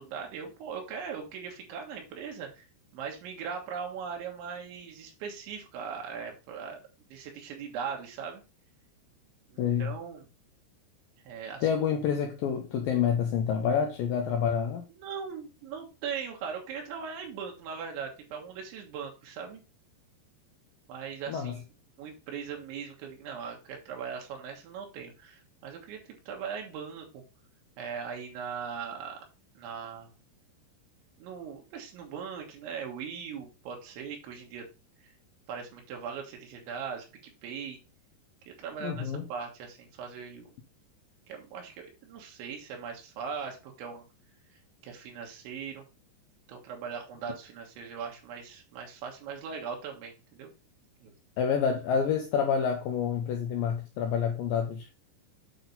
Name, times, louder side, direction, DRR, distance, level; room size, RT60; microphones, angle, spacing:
voice 1, 0.0-2.7 2.9-6.8 7.1-8.4 9.5-10.3 11.3-11.7 15.0-19.6 20.9-21.6 22.0-26.0 26.3-27.2 27.8-29.2 29.6-30.1 31.2-34.7 35.5-37.8 38.5-40.5 41.3-44.1 44.8-45.8 46.5-50.5 51.0-51.1, right 6 dB, 85° right, 3.7 m, -39 dB
voice 2, 9.6-10.0 11.6-14.8 21.3-21.5 38.8-39.3 51.4-54.9, left 7 dB, 85° left, 2.0 m, -28 dB
8.9 x 4.0 x 4.0 m
omnidirectional pair, 5.2 m